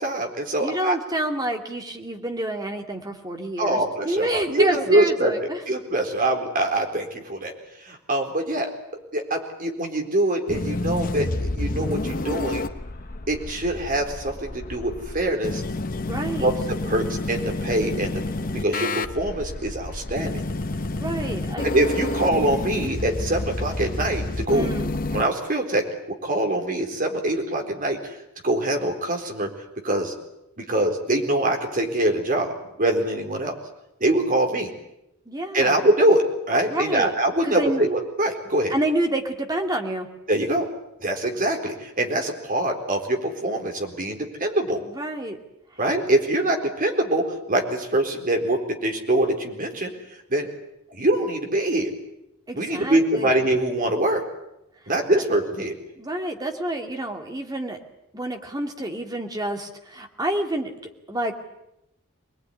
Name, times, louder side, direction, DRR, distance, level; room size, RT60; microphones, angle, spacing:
voice 1, 0.0-1.0 3.6-7.5 7.8-8.7 9.1-11.3 11.5-12.6 13.3-15.6 16.4-20.4 21.6-24.7 25.1-28.2 28.4-29.5 29.8-30.1 30.6-33.5 34.0-34.7 35.5-38.7 40.3-40.7 41.0-44.8 45.8-49.9 50.3-50.5 50.9-51.9 52.6-54.2 54.9-55.7, right 1 dB, 40° right, 3 dB, 4.1 m, -24 dB
voice 2, 0.6-5.6 16.0-16.5 21.0-21.7 24.5-24.9 35.3-35.8 36.7-37.1 37.4-37.8 38.7-40.1 44.8-45.4 52.5-53.3 56.0-57.8 58.1-60.7 61.1-61.3, right 1 dB, 15° right, 4 dB, 2.5 m, -28 dB
sound 1, 10.5-25.2, left 2 dB, 40° left, 1.0 m, -29 dB
24.5 x 20.5 x 10.0 m, 0.87 s
head